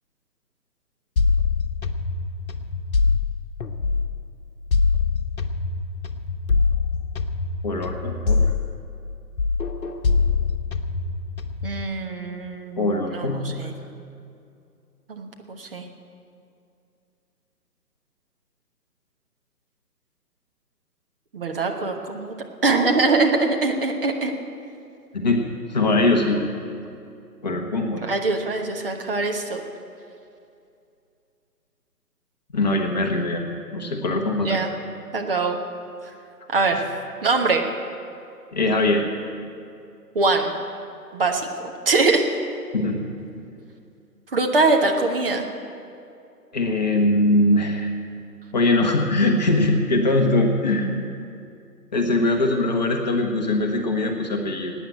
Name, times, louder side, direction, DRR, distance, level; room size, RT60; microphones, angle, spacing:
sound 1, 1.2-4.3 4.7-9.1 9.4-11.8, left 4 dB, 60° left, 1.2 m, -24 dB
voice 1, 7.6-8.4 12.8-13.7 25.1-25.4 25.7-26.4 27.4-28.0 32.5-34.8 36.7-36.8 38.5-39.0 42.7-43.0 46.5-47.9 48.5-51.1 51.9-54.7, left 2 dB, 25° left, 2 dB, 1.0 m, -22 dB
voice 2, 11.6-13.7 15.1-15.8 21.3-22.3 22.6-24.3 28.0-29.6 34.4-34.7 35.1-35.6 36.5-36.8 37.2-37.6 40.1-40.5 41.1-41.5 41.8-42.2 44.3-45.4, right 3 dB, 35° right, 3 dB, 1.2 m, -22 dB
15.0 x 9.3 x 8.8 m, 2.5 s
figure-of-eight pair, 150°, 48 cm